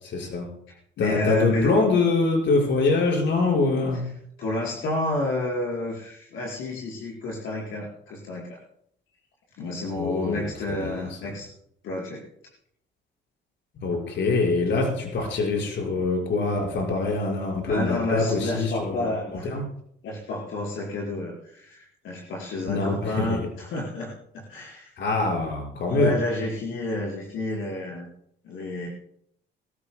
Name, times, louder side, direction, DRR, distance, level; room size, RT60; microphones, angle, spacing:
voice 1, 0.0-0.5 1.0-4.0 10.0-10.5 10.8-11.4 13.8-19.6 22.7-23.5 25.0-26.1, left 3 dB, 65° left, 0 dB, 5.4 m, -24 dB
voice 2, 0.7-1.7 4.4-8.6 9.6-11.5 11.8-12.2 17.7-19.6 20.0-24.9 25.9-28.1 28.4-28.9, left 2 dB, 80° left, -3 dB, 4.8 m, -30 dB
23.5 x 14.5 x 2.2 m, 0.69 s
cardioid pair, 90°, 20 cm